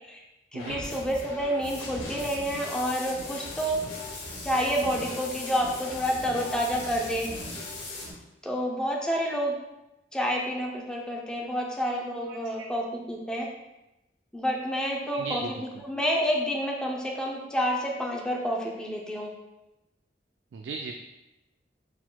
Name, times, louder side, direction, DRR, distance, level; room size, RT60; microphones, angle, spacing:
voice 1, 0.5-3.8 4.4-7.3 8.4-9.5 10.1-13.5 14.3-15.4 15.8-19.3, equal, 5° left, -2 dB, 0.5 m, -29 dB
sound 1, 0.6-8.1, left 2 dB, 85° left, 1.1 m, -39 dB
voice 2, 12.2-12.7 15.1-15.8 20.5-20.9, right 3 dB, 80° right, 4 dB, 0.3 m, -37 dB
4.6 x 3.8 x 2.2 m, 0.96 s
head